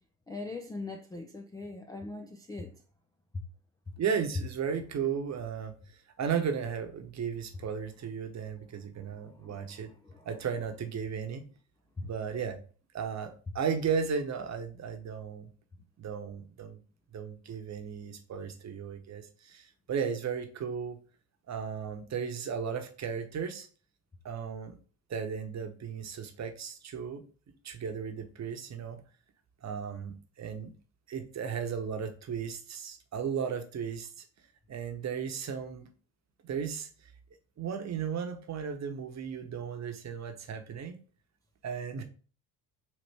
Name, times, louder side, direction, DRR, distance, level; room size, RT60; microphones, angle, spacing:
voice 1, 0.3-2.7 9.2-9.5 10.1-10.2 12.0-12.1, left 3 dB, 10° left, 0.3 m, -41 dB
voice 2, 4.0-9.9 10.2-11.4 12.0-12.6 12.9-15.5 16.0-16.8 17.1-21.0 21.5-23.7 24.2-24.8 25.1-27.2 27.6-29.0 29.6-30.7 31.1-34.2 34.7-35.9 36.4-36.9 37.6-41.0 41.6-42.0, right 7 dB, 35° right, 0.9 m, -35 dB
4.2 x 2.9 x 3.3 m
hypercardioid pair, 70°, 46 cm